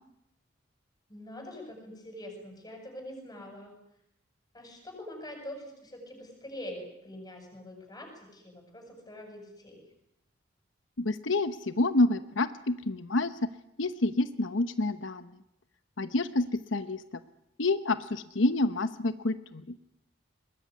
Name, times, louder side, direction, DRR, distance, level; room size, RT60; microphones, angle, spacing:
voice 1, 1.1-3.8 4.5-9.9, left 1 dB, 20° left, 3 dB, 7.8 m, -44 dB
voice 2, 11.0-13.3 13.8-15.3 16.0-17.0 17.6-19.6, left 2 dB, 85° left, 11 dB, 1.0 m, -28 dB
22.0 x 20.5 x 9.6 m, 0.80 s
head